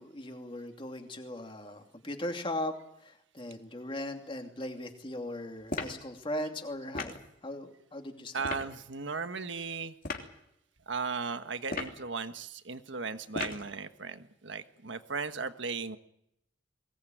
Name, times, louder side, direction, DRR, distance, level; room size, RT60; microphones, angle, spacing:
voice 1, 0.0-2.7 3.3-7.1 7.4-8.5, left 1 dB, 25° left, 4 dB, 2.8 m, -38 dB
sound 1, 5.7-6.0 6.9-7.2 8.4-8.7 10.0-10.3 11.6-12.0 13.3-13.7, left 3 dB, 45° left, 3.1 m, -36 dB
voice 2, 8.3-10.0 10.9-16.0, right 4 dB, 75° right, 10 dB, 1.5 m, -36 dB
22.5 x 18.5 x 9.3 m, 0.79 s
head